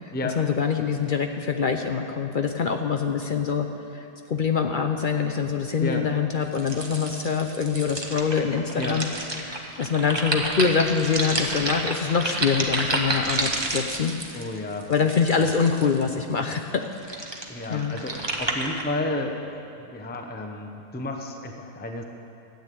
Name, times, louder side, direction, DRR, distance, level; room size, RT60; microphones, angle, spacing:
voice 1, 0.0-3.7 3.9-9.1 9.4-14.1 14.4-14.5 14.9-16.8 17.7-18.0, left 6 dB, 60° left, 5 dB, 0.5 m, -25 dB
sound 1, 6.5-16.1 16.8-18.8, right 2 dB, 20° right, 0.9 m, -30 dB
voice 2, 14.3-14.9 15.4-15.5 17.5-19.4 19.9-22.0, left 2 dB, 10° left, 4 dB, 0.6 m, -31 dB
13.0 x 8.8 x 8.3 m, 2.7 s
omnidirectional pair, 1.5 m